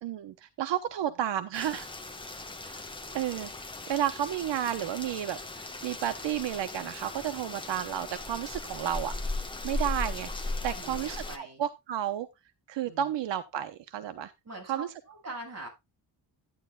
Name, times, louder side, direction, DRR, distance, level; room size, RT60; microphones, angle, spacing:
voice 1, 0.0-1.9 2.6-2.9 3.1-3.5 3.9-9.1 9.6-12.3 12.7-14.3 14.7-14.9, right 10 dB, 85° right, 1.0 m, -32 dB
Rain, 1.5-11.4, left 2 dB, 10° left, 1.2 m, -38 dB
voice 2, 10.7-11.6 12.8-13.1 14.4-15.7, right 2 dB, 35° right, 5.9 m, -43 dB
12.5 x 9.7 x 2.2 m
wide cardioid pair, 175°, 42 cm